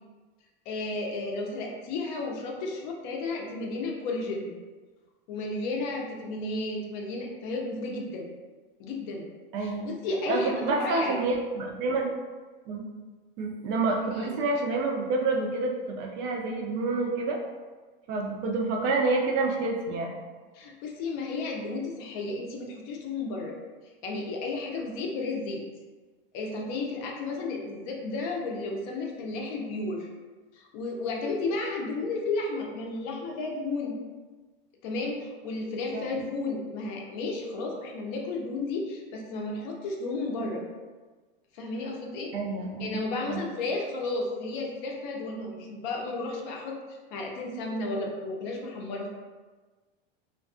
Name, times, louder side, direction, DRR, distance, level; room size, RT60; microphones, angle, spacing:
voice 1, 0.7-4.5 5.3-8.3 8.8-9.3 9.6-11.2 14.1-14.3 20.5-23.6 24.0-25.6 26.3-30.1 30.5-33.9 34.8-40.6 41.5-42.3 42.8-49.1, left 3 dB, 55° left, 0 dB, 0.5 m, -33 dB
voice 2, 9.5-9.9 10.3-12.1 12.7-12.9 13.4-17.4 18.1-20.1 35.9-36.1 42.3-43.0 43.3-43.4, right 3 dB, 45° right, 1 dB, 0.4 m, -28 dB
2.3 x 2.2 x 2.4 m, 1.3 s
supercardioid pair, 125°, 29 cm